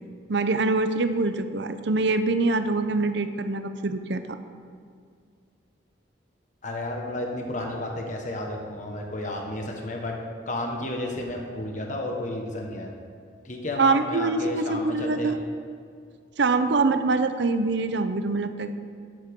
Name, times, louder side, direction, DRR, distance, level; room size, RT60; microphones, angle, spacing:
voice 1, 0.3-4.4 13.8-15.4 16.4-18.7, right 3 dB, 70° right, 10 dB, 0.6 m, -24 dB
voice 2, 6.6-10.1 10.5-12.9 13.4-15.3, left 1 dB, 40° left, 1 dB, 1.4 m, -32 dB
13.0 x 8.7 x 3.7 m, 2.2 s
head